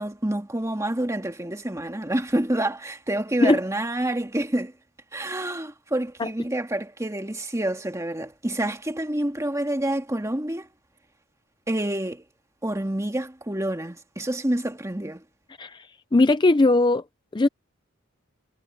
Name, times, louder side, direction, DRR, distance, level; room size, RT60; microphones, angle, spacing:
voice 1, 0.0-4.7 5.1-10.7 11.7-12.2 12.6-15.2, right 1 dB, 15° right, 1.8 m, -28 dB
voice 2, 16.1-17.0 17.3-17.5, left 2 dB, 20° left, 0.5 m, -19 dB
head